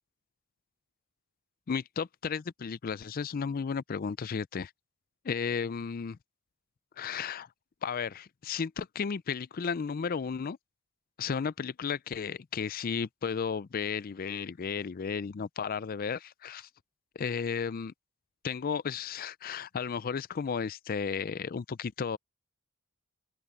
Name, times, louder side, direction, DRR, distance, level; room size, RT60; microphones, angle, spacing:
voice 1, 1.7-4.7 5.2-6.2 7.0-7.5 7.8-10.6 11.2-16.7 17.2-17.9 18.4-22.2, left 6 dB, 40° left, 0.4 m, -34 dB
open air
head